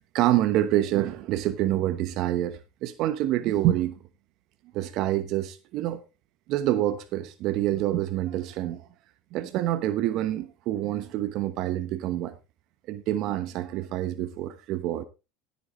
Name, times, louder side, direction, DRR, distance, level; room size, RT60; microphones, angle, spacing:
voice 1, 0.0-3.9 4.7-6.0 6.5-8.9 9.3-12.3 12.9-15.0, right 13 dB, 55° right, 1.0 m, -27 dB
14.5 x 8.5 x 3.1 m
hypercardioid pair, 95°, 0 cm